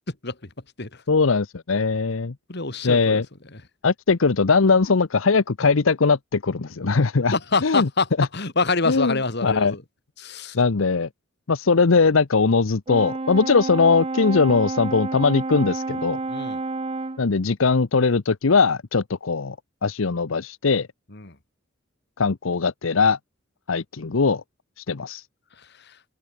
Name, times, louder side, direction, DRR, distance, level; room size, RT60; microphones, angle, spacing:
voice 1, 1.1-2.3 2.8-3.2 3.8-7.3 7.6-7.9 8.2-8.3 8.9-9.7 10.5-11.1 11.5-16.2 17.2-19.6 19.8-20.9 22.2-23.2 23.7-24.4 24.8-25.2, left 4 dB, 80° left, 0.8 m, -20 dB
voice 2, 2.5-3.2 3.5-3.6 7.3-9.8 10.2-10.6 16.3-16.6 21.1-21.4 25.9-26.0, left 3 dB, 55° left, 2.2 m, -26 dB
Brass instrument, 12.9-17.3, right 3 dB, 30° right, 0.7 m, -29 dB
head